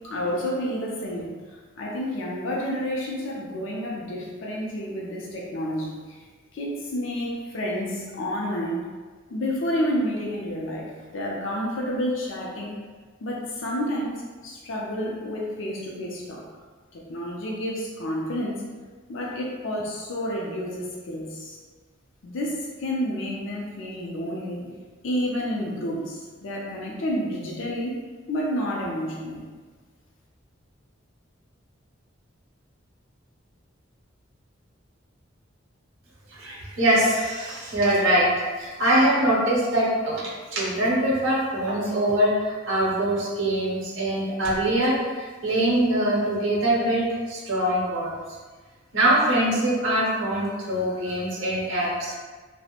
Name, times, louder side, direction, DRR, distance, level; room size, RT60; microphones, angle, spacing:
voice 1, 0.1-6.2 6.5-8.8 9.3-12.8 13.2-16.4 16.9-18.6 19.1-21.6 22.2-24.7 25.0-28.0 28.3-29.5, equal, 70° left, -3 dB, 0.4 m, -30 dB
voice 2, 36.3-38.3 38.6-48.2 48.9-52.1, right 1 dB, 75° right, -5 dB, 0.7 m, -23 dB
2.4 x 2.0 x 2.8 m, 1.4 s
head